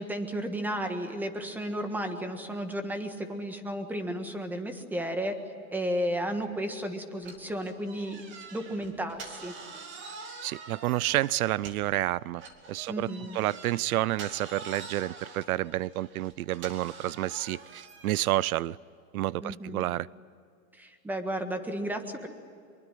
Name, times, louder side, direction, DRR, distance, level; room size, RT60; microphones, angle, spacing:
voice 1, 0.0-5.4 5.7-8.2 8.5-9.5 12.9-13.4 19.4-19.8 20.7-22.3, equal, 5° right, 7 dB, 1.5 m, -33 dB
sound 1, 7.2-12.0 12.4-18.4, right 4 dB, 25° right, 2.5 m, -46 dB
voice 2, 10.4-12.4 12.7-18.8 19.1-20.1, right 15 dB, 80° right, 23 dB, 0.6 m, -29 dB
24.5 x 23.5 x 9.3 m, 2.3 s
supercardioid pair, 155°, 43 cm